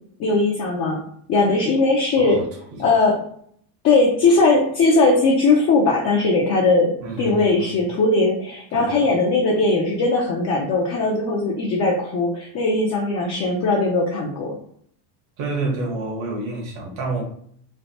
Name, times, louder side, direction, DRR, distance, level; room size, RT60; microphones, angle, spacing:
voice 1, 0.2-1.0 1.3-2.5 2.8-3.2 3.8-14.6, left 3 dB, 35° left, -1 dB, 0.5 m, -19 dB
voice 2, 7.0-7.7 8.7-9.0 15.4-17.2, right 3 dB, 65° right, -2 dB, 1.3 m, -28 dB
3.3 x 2.4 x 2.7 m, 0.63 s
cardioid pair, 140°, 48 cm